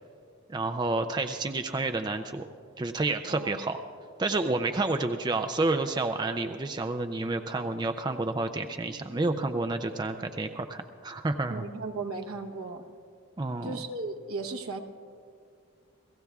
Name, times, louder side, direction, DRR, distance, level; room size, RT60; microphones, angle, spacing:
voice 1, 0.5-2.5 2.8-3.8 4.2-11.7 13.4-13.8, right 2 dB, 20° right, 7 dB, 0.4 m, -29 dB
voice 2, 11.5-12.8 13.6-14.8, right 3 dB, 80° right, 5 dB, 0.9 m, -36 dB
29.0 x 16.5 x 2.4 m, 2.3 s
head